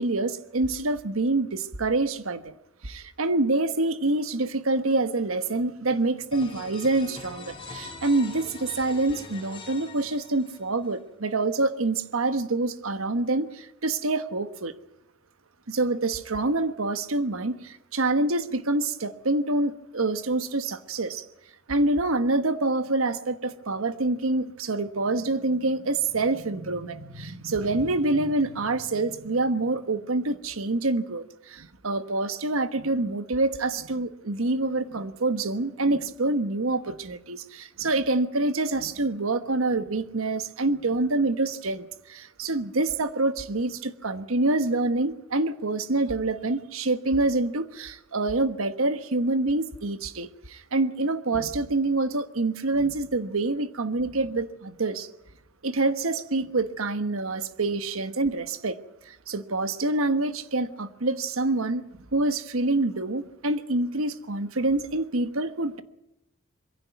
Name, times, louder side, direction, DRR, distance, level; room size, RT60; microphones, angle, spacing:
voice 1, 0.0-2.5 2.8-14.7 15.7-21.3 21.7-55.1 55.6-58.7 59.0-61.8 62.1-65.8, right 2 dB, 80° right, 1.3 m, -26 dB
sound 1, 6.3-10.9, left 3 dB, 25° left, 4.0 m, -43 dB
22.5 x 16.5 x 9.3 m
head